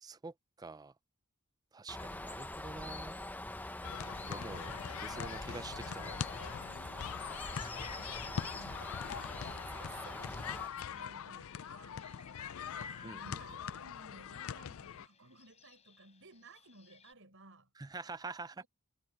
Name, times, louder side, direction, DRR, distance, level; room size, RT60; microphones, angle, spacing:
voice 1, 0.0-0.9 1.7-3.1 4.3-6.2 13.0-13.4 17.8-18.6, right 3 dB, 20° right, 0.4 m, -46 dB
Bird, 1.9-10.7, left 1 dB, 10° left, 0.8 m, -43 dB
sound 1, 3.8-15.1, left 8 dB, 70° left, 0.4 m, -43 dB
sound 2, 6.1-17.1, left 4 dB, 30° left, 6.1 m, -58 dB
voice 2, 6.4-8.9 9.6-12.1 13.0-17.7 18.6-18.7, right 2 dB, 65° right, 7.3 m, -58 dB
head